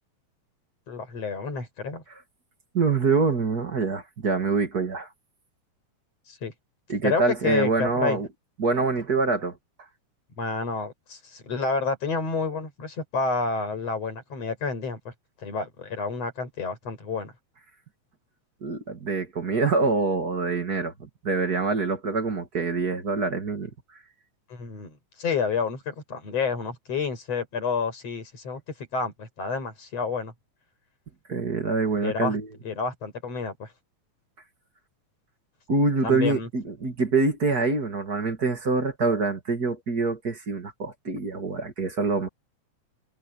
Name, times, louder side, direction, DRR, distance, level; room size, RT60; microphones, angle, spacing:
voice 1, 0.9-2.0 6.3-6.5 7.0-8.2 10.4-15.1 15.4-17.3 24.5-30.3 32.0-32.4 32.6-33.7 36.0-36.5, left 4 dB, 55° left, 7.5 m, -29 dB
voice 2, 2.7-5.1 6.9-8.3 8.6-9.5 18.6-20.9 21.2-23.7 31.3-32.5 35.7-42.3, right 4 dB, 35° right, 2.2 m, -25 dB
omnidirectional pair, 3.3 m